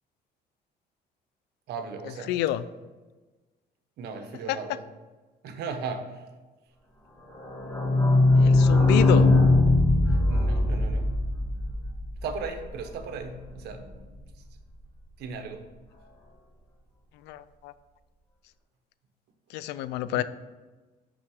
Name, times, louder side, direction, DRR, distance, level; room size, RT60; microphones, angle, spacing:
voice 1, 1.7-2.4 4.0-4.8 5.4-6.2 9.2-9.3 10.3-11.1 12.2-13.9 15.2-15.7 20.1-20.2, right 4 dB, 75° right, 6 dB, 1.0 m, -36 dB
voice 2, 2.3-2.6 4.5-4.6 8.4-9.3 17.2-17.7 19.5-20.2, left 13 dB, 85° left, 16 dB, 0.4 m, -28 dB
sound 1, 7.3-12.9 13.2-13.3 13.5-13.6 13.9-14.0, left 2 dB, 15° left, 1.9 m, -21 dB
6.1 x 5.6 x 6.3 m, 1.3 s
cardioid pair, 110°, 17 cm